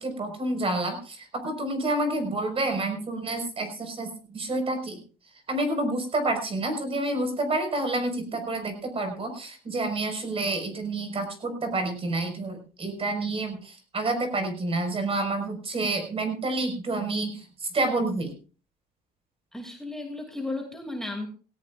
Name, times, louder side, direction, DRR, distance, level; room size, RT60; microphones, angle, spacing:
voice 1, 0.0-5.0 5.5-17.4 17.7-18.3, right 2 dB, 35° right, 6 dB, 5.1 m, -29 dB
voice 2, 19.5-21.3, left 2 dB, 5° left, 3 dB, 2.6 m, -34 dB
18.0 x 17.5 x 2.5 m, 0.37 s
cardioid pair, 110°, 17 cm